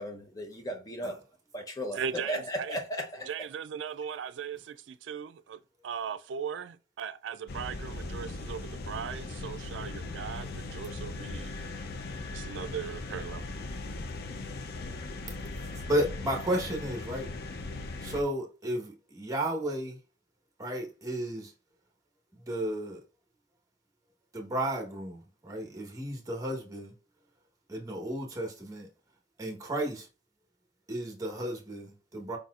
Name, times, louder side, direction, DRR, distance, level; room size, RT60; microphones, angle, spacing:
voice 1, 0.0-1.1 1.5-3.3, equal, 20° left, 0.8 m, -36 dB
voice 2, 1.9-2.8 3.3-11.6 12.3-13.4, right 7 dB, 90° right, 0.4 m, -38 dB
sound 1, 7.5-18.2, left 2 dB, 55° left, 0.5 m, -39 dB
voice 3, 15.8-17.3 18.0-20.0 20.6-21.5 22.5-23.0 24.3-26.9 27.7-28.9 29.4-30.1 30.9-32.4, right 1 dB, 20° right, 1.1 m, -33 dB
4.7 x 4.1 x 2.4 m
head